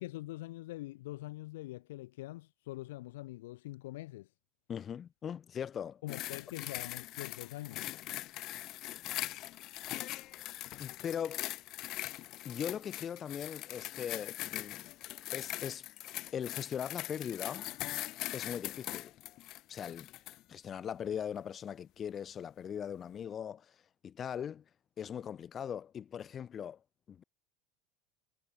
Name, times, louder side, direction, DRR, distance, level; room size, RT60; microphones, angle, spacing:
voice 1, 0.0-4.3 6.0-7.9, left 18 dB, 75° left, 1.0 m, -44 dB
voice 2, 4.7-6.0 10.8-11.4 12.4-14.9 15.3-15.8 16.3-17.7 18.3-19.1 19.7-20.1 20.5-23.7 24.0-24.6 25.0-26.8 27.1-27.2, left 8 dB, 35° left, 1.2 m, -40 dB
sound 1, 6.1-20.4 21.0-21.2, left 16 dB, 55° left, 0.6 m, -41 dB
hypercardioid pair, 85°, 0 cm